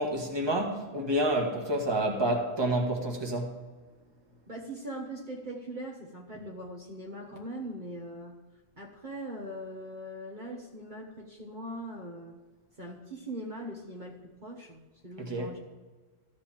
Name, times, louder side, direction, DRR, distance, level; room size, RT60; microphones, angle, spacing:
voice 1, 0.0-3.6 15.2-15.6, right 1 dB, 25° right, 1.5 m, -29 dB
voice 2, 4.5-8.4 8.8-12.4 12.8-15.6, right 1 dB, 45° right, 1.3 m, -41 dB
14.0 x 5.1 x 7.2 m
omnidirectional pair, 1.1 m